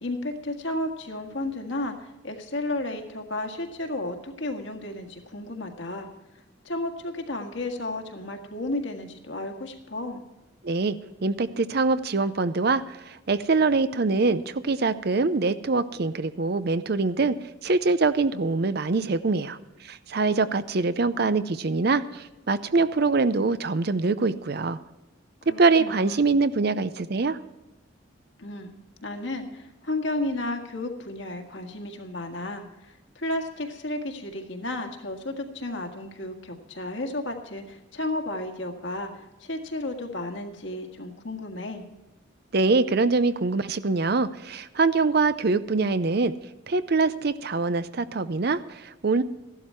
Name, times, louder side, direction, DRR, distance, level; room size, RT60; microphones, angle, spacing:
voice 1, 0.0-6.1 6.6-10.2 25.5-26.3 28.4-28.7 29.0-41.9, left 2 dB, 65° left, 4 dB, 1.7 m, -33 dB
voice 2, 10.6-17.4 17.6-19.6 19.8-24.8 25.6-27.4 42.5-46.3 46.7-49.2, right 3 dB, 50° right, 14 dB, 0.5 m, -24 dB
15.0 x 12.0 x 4.5 m, 1.0 s
head